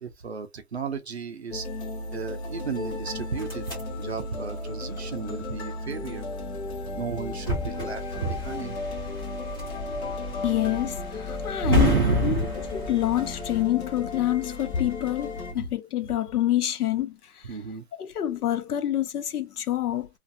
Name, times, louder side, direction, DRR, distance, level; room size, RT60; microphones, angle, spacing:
voice 1, 0.0-1.7 2.1-3.7 4.0-6.3 7.0-8.8 11.6-12.5 15.6-15.7 17.4-17.9, right 5 dB, 50° right, 0.4 m, -31 dB
sound 1, 1.5-15.5, left 2 dB, 45° left, 0.9 m, -35 dB
sound 2, 2.9-13.6, left 1 dB, 15° left, 0.6 m, -33 dB
voice 2, 10.4-11.9 12.2-12.4 12.9-17.6 17.9-20.1, left 12 dB, 80° left, 0.7 m, -27 dB
2.4 x 2.4 x 2.5 m
hypercardioid pair, 175°, 45 cm